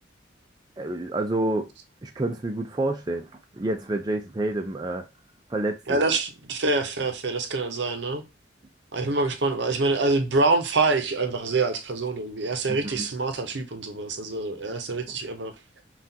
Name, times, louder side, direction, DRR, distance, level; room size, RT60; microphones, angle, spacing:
voice 1, 0.8-1.7 2.0-5.0 5.5-6.1 12.7-13.1, right 2 dB, 20° right, 0.4 m, -29 dB
voice 2, 5.9-8.2 8.9-15.5, right 3 dB, 65° right, 0.7 m, -26 dB
5.7 x 2.4 x 2.7 m
head